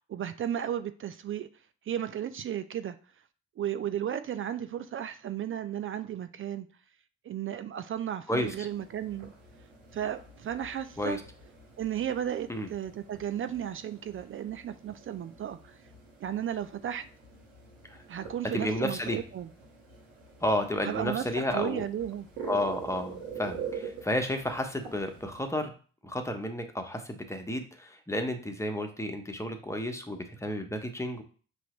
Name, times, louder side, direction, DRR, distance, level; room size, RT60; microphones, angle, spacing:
voice 1, 0.1-1.5 1.9-3.0 3.6-6.7 7.2-9.3 9.9-11.2 11.8-15.7 16.2-17.0 18.1-19.5 20.8-21.2 21.5-22.3, right 10 dB, 45° right, 11 dB, 0.4 m, -34 dB
sound 1, 8.4-25.5, right 6 dB, 90° right, 1.5 m, -45 dB
voice 2, 18.5-19.2 20.4-21.8 22.5-25.7 26.0-31.2, left 1 dB, 10° left, 5 dB, 0.9 m, -32 dB
5.4 x 3.0 x 3.0 m, 0.40 s
supercardioid pair, 55°, 29 cm